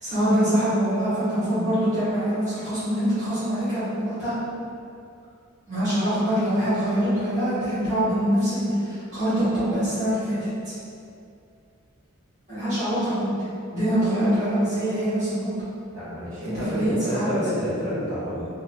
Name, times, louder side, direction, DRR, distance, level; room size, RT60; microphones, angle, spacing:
voice 1, 0.0-4.3 5.7-10.3 10.6-10.7 12.5-13.3 13.7-15.5 16.4-17.2, equal, 35° right, -15 dB, 1.2 m, -24 dB
voice 2, 15.9-18.5, equal, 15° right, -15 dB, 1.3 m, -29 dB
2.7 x 2.1 x 3.1 m, 2.5 s
head